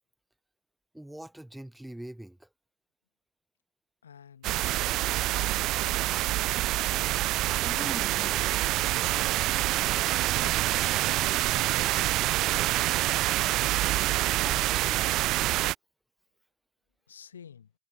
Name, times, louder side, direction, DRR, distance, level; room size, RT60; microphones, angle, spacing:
voice 1, 0.9-2.5 7.6-8.7 14.4-15.2, right 1 dB, 5° right, 0.6 m, -43 dB
voice 2, 4.0-4.6 5.1-6.3 10.3-10.9 11.2-12.5 17.1-17.7, left 8 dB, 70° left, 1.3 m, -52 dB
sound 1, 4.4-15.7, right 17 dB, 35° right, 0.3 m, -26 dB
figure-of-eight pair, 90°, 0 cm